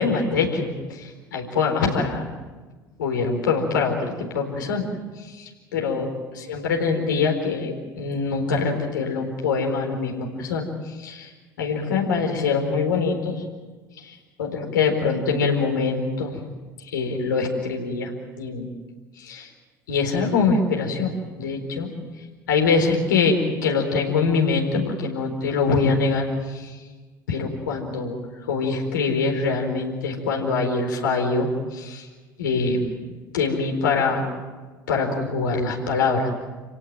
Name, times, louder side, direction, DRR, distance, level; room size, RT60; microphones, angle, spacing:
voice 1, 0.0-2.3 3.0-4.9 5.2-11.3 11.6-13.4 14.0-16.4 16.9-18.1 18.4-18.7 19.2-19.5 19.9-21.9 22.5-26.8 27.3-32.1 32.4-34.3 34.9-36.4, left 4 dB, 70° left, 1 dB, 4.4 m, -24 dB
29.0 x 17.5 x 9.1 m, 1.3 s
figure-of-eight pair, 65°, 11 cm